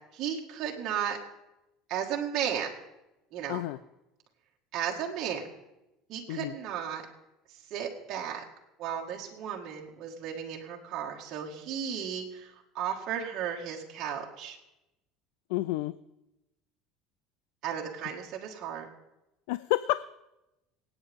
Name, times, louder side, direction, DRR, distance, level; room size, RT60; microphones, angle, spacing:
voice 1, 0.1-1.2 1.9-2.7 3.3-3.6 4.7-5.5 6.1-7.0 7.7-8.4 8.8-14.6 17.6-18.9, right 8 dB, 50° right, -1 dB, 1.9 m, -34 dB
voice 2, 15.5-15.9 19.5-20.0, left 17 dB, 80° left, 16 dB, 0.4 m, -29 dB
26.5 x 9.0 x 3.6 m, 0.95 s
supercardioid pair, 130°, 0 cm